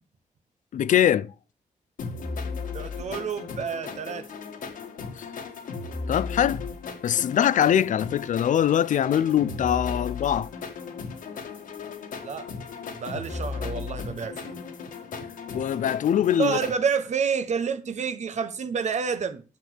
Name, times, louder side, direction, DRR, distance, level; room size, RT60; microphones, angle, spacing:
voice 1, 0.7-1.3 5.2-5.3 6.1-6.6 7.0-10.5 15.5-16.6, left 10 dB, 70° left, 0.5 m, -22 dB
sound 1, 2.0-16.8, left 5 dB, 90° left, 2.4 m, -36 dB
voice 2, 2.7-4.3 12.2-12.5 12.9-14.6 16.4-19.4, right 6 dB, 60° right, 1.3 m, -29 dB
10.5 x 6.2 x 6.5 m
cardioid pair, 110°, 14 cm